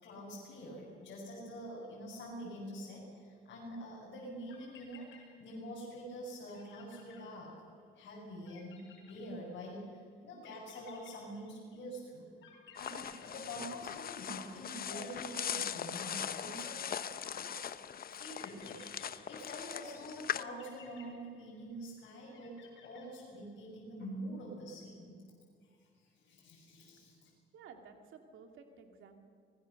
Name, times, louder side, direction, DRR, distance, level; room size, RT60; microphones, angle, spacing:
voice 1, 0.0-7.6 7.9-12.3 12.8-17.6 18.1-22.6 22.8-25.2 25.6-27.3, equal, 65° left, -5 dB, 6.7 m, -46 dB
sound 1, 4.5-5.8 6.1-6.2 6.5-7.9 8.4-9.9 10.4-11.8 12.4-14.1 14.4-15.8 16.4-17.6 18.4-19.8 20.3-21.9 22.3-23.5, left 7 dB, 80° left, 4.9 m, -59 dB
sound 2, 12.8-20.4, left 8 dB, 50° left, 0.8 m, -40 dB
voice 2, 27.5-29.3, right 5 dB, 80° right, 5 dB, 2.7 m, -54 dB
26.0 x 21.0 x 6.7 m, 2.2 s
cardioid pair, 90°, 20 cm